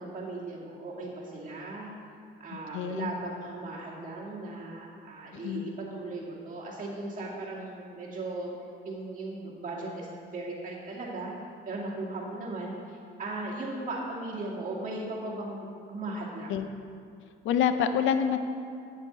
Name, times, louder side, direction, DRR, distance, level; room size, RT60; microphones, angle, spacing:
voice 1, 0.0-1.9 2.4-8.5 8.9-11.3 11.7-16.5, right 2 dB, 40° right, -5 dB, 2.1 m, -37 dB
voice 2, 2.5-3.1 5.3-5.7 16.5-16.7 17.4-18.4, left 8 dB, 80° left, 9 dB, 0.5 m, -27 dB
8.9 x 6.8 x 4.3 m, 2.4 s
cardioid pair, 90°, 20 cm